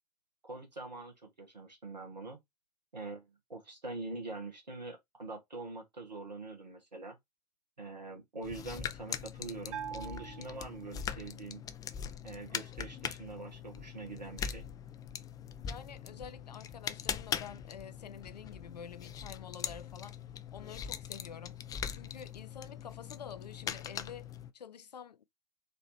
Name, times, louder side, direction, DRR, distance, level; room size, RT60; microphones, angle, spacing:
voice 1, 0.4-2.4 2.9-7.2 7.8-11.6 12.2-14.6, right 3 dB, 85° right, 1.7 m, -44 dB
sound 1, 8.4-24.5, left 8 dB, 15° left, 0.4 m, -41 dB
Bell, 9.7-11.3, right 8 dB, 50° right, 0.8 m, -44 dB
voice 2, 15.6-20.2 20.5-21.6 21.9-25.2, left 7 dB, 75° left, 0.5 m, -48 dB
4.1 x 2.9 x 4.2 m
figure-of-eight pair, 95°, 21 cm